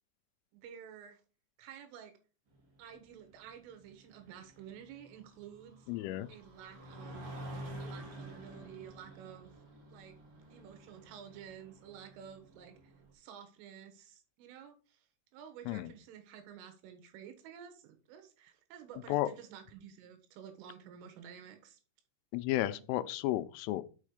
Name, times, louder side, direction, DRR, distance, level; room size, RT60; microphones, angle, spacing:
voice 1, 0.5-1.2 1.6-2.1 2.8-5.9 6.3-7.4 7.8-9.5 9.9-10.1 10.5-15.1 15.3-21.8 22.6-22.8, right 8 dB, 80° right, 3.9 m, -51 dB
sound 1, 2.5-13.1, right 1 dB, 65° right, 1.4 m, -50 dB
voice 2, 5.9-6.3 15.7-15.9 19.1-19.3 22.3-23.8, left 15 dB, 85° left, 3.1 m, -33 dB
6.5 x 6.3 x 4.9 m
omnidirectional pair, 5.7 m